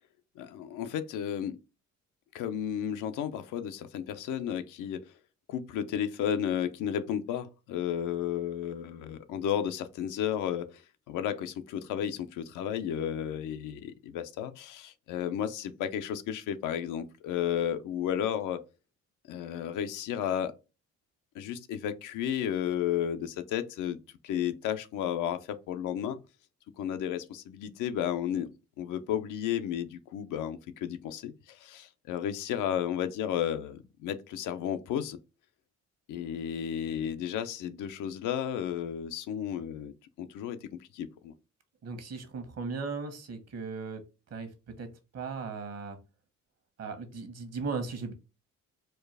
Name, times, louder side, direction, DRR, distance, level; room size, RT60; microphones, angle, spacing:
voice 1, 0.4-1.6 2.3-5.0 5.5-10.8 11.1-18.6 19.3-20.5 21.3-24.0 24.2-26.2 26.8-28.5 28.8-35.2 36.1-41.3, left 9 dB, 90° left, 0.6 m, -33 dB
voice 2, 41.8-44.0 44.3-44.5 44.8-44.9 45.1-46.0 46.8-48.1, right 4 dB, 55° right, 1.2 m, -37 dB
4.4 x 2.3 x 3.3 m
cardioid pair, 90°, 30 cm